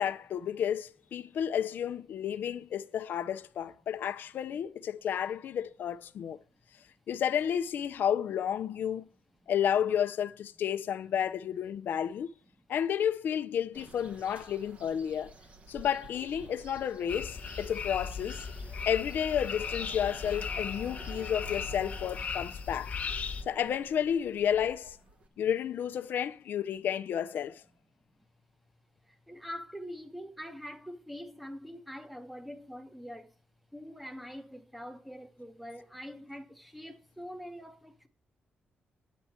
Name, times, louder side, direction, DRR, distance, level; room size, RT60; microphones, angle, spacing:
voice 1, 0.0-6.4 7.1-9.0 9.5-12.3 12.7-15.3 15.7-18.5 18.9-23.0 23.5-25.0 25.4-27.6, left 9 dB, 70° left, 0.7 m, -31 dB
sound 1, 13.7-25.3, right 3 dB, 40° right, 1.5 m, -51 dB
sound 2, 17.1-23.4, left 6 dB, 45° left, 1.4 m, -37 dB
voice 2, 29.1-33.3 33.7-38.1, equal, ahead, 1.3 m, -44 dB
9.8 x 9.2 x 4.5 m
wide cardioid pair, 155°, 4 cm